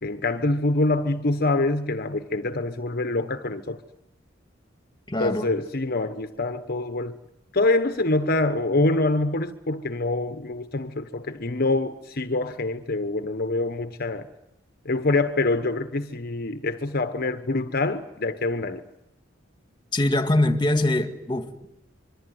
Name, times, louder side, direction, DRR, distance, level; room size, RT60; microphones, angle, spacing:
voice 1, 0.0-3.8 5.2-7.2 7.5-14.3 14.8-18.8, left 2 dB, 50° left, 1.2 m, -25 dB
voice 2, 5.1-5.5 19.9-21.7, left 1 dB, 25° left, 2.1 m, -23 dB
26.0 x 23.0 x 9.5 m
head